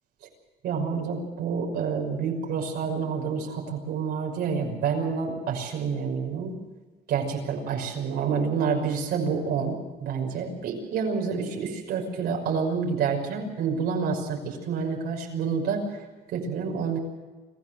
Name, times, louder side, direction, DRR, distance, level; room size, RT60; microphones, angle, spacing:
voice 1, 0.6-6.5 7.1-16.0 16.3-17.0, right 6 dB, 75° right, 1 dB, 6.0 m, -28 dB
26.0 x 14.5 x 7.8 m, 1.2 s
cardioid pair, 110°, 17 cm